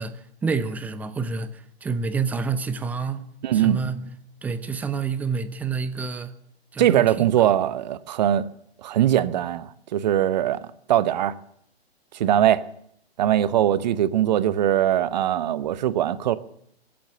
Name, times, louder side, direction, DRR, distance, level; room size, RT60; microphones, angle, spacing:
voice 1, 0.0-3.2 3.5-4.1 4.4-6.3 6.7-7.5, right 5 dB, 5° right, 0.5 m, -28 dB
voice 2, 3.4-3.8 6.8-8.5 8.8-11.4 12.1-12.6 13.2-16.3, right 11 dB, 40° right, 0.9 m, -21 dB
16.0 x 8.7 x 9.5 m
figure-of-eight pair, 120°, 32 cm